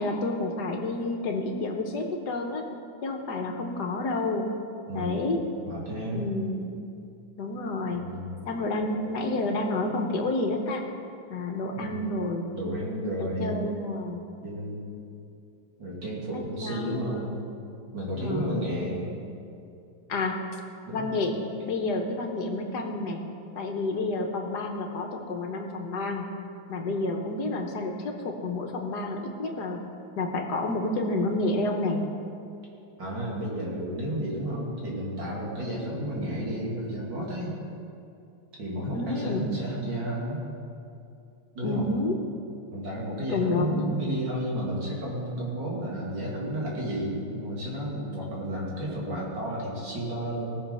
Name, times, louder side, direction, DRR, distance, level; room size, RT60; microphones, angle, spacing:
voice 1, 0.0-2.6 3.0-4.5 4.9-5.4 6.1-6.7 7.4-8.1 8.4-10.8 11.3-12.4 13.2-14.3 16.3-17.4 18.2-18.7 20.1-20.4 20.9-21.4 21.7-23.2 23.6-26.3 26.7-29.8 30.2-32.0 38.9-39.5 41.6-42.2 43.3-43.9, left 2 dB, 60° left, 3 dB, 1.5 m, -29 dB
voice 2, 4.9-6.2 7.9-8.3 11.7-12.1 12.5-13.6 14.4-14.8 15.8-17.3 17.9-19.1 20.9-21.1 33.0-37.6 38.6-40.4 41.5-41.9 42.7-50.6, equal, 60° right, -5 dB, 3.3 m, -32 dB
18.5 x 6.7 x 5.5 m, 2.6 s
omnidirectional pair, 2.2 m